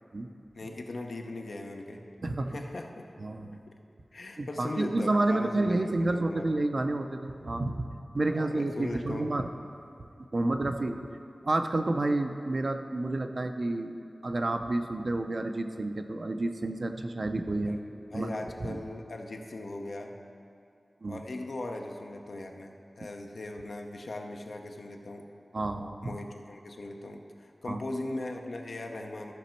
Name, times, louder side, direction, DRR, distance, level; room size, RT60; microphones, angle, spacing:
voice 1, 0.5-2.1 2.5-3.0 3.7-3.8 4.1-6.5 8.3-9.3 10.4-10.6 17.7-17.8 18.1-20.1 21.1-25.2 26.0-29.3, left 2 dB, 75° left, 3 dB, 0.7 m, -39 dB
voice 2, 2.2-2.6 3.2-3.6 4.4-7.9 8.1-9.5 10.3-11.0 11.4-14.0 14.2-17.8 18.1-18.8 21.0-21.2 25.5-26.2 27.7-27.8, right 2 dB, 55° right, 6 dB, 0.5 m, -30 dB
14.0 x 5.1 x 4.5 m, 2.5 s
wide cardioid pair, 65°, 0 cm